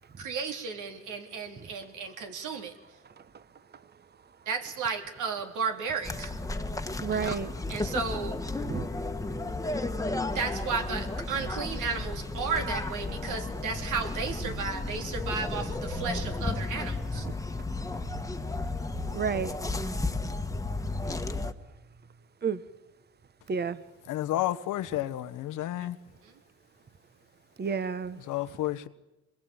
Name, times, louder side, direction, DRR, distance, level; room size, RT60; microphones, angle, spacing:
voice 1, 0.2-2.7 4.5-6.3 7.1-8.4 10.3-17.3 25.8-25.9, right 5 dB, 80° right, 3.6 m, -34 dB
sound 1, 6.0-21.5, left 2 dB, 10° left, 1.4 m, -33 dB
voice 2, 7.0-7.5 8.7-8.9 19.1-19.6 22.4-22.6 23.5-23.8 27.6-28.2, right 6 dB, 35° right, 1.1 m, -30 dB
voice 3, 24.1-26.0 28.3-28.9, left 14 dB, 85° left, 1.2 m, -31 dB
25.0 x 21.5 x 8.9 m
cardioid pair, 90°, 30 cm